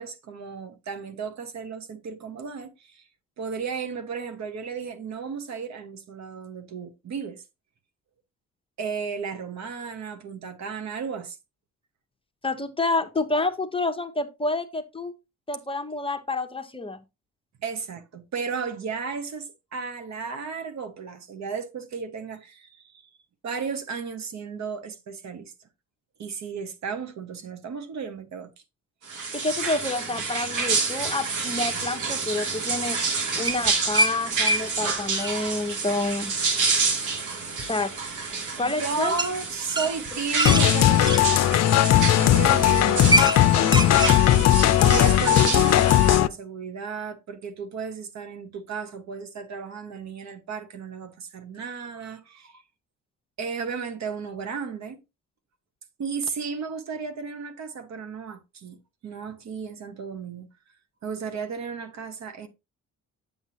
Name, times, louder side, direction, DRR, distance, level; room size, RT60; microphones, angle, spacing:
voice 1, 0.0-3.0 3.4-7.4 8.8-11.4 17.6-23.1 23.4-25.5 26.2-28.5 38.6-41.8 42.1-44.0 44.8-52.6 53.4-55.0 56.0-58.8 59.0-60.5 61.0-62.5, right 5 dB, 65° right, 1.4 m, -34 dB
voice 2, 12.4-15.1 15.5-17.0 29.3-33.0 33.3-36.3 37.6-37.9 38.6-39.1, left 2 dB, 20° left, 0.9 m, -28 dB
sound 1, 29.1-46.2, right 4 dB, 80° right, 2.6 m, -29 dB
sound 2, 33.4-34.1 34.5-34.6 34.9-35.3 37.6-37.7 39.2-39.3 39.7-41.2 41.9-42.2 42.5-42.6 42.9-43.4 43.6-44.2, right 1 dB, 15° right, 0.9 m, -23 dB
sound 3, 40.4-46.3, left 13 dB, 60° left, 0.5 m, -18 dB
7.8 x 7.7 x 2.8 m
cardioid pair, 90°, 30 cm